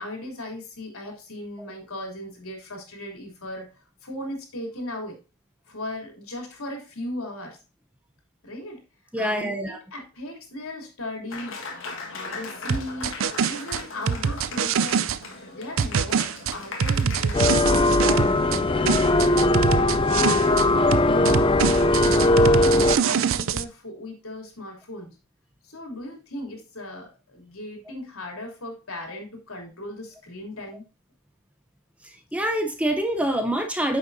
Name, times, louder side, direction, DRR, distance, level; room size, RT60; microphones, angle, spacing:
voice 1, 0.0-5.2 5.7-7.6 8.4-8.8 9.1-11.6 12.1-13.2 13.4-15.2 15.5-19.2 20.1-25.1 25.6-30.8, left 1 dB, 75° left, 2 dB, 3.2 m, -37 dB
voice 2, 9.1-9.8 32.3-34.0, right 1 dB, 5° right, 5 dB, 0.8 m, -25 dB
Applause, 11.3-17.3, left 4 dB, 60° left, 1.6 m, -38 dB
sound 1, 12.7-15.2 15.8-18.6 18.9-20.7 20.9-23.6, right 7 dB, 65° right, 0.5 m, -24 dB
sound 2, 17.3-23.0, left 2 dB, 25° left, 0.3 m, -19 dB
9.0 x 6.8 x 2.7 m, 0.31 s
head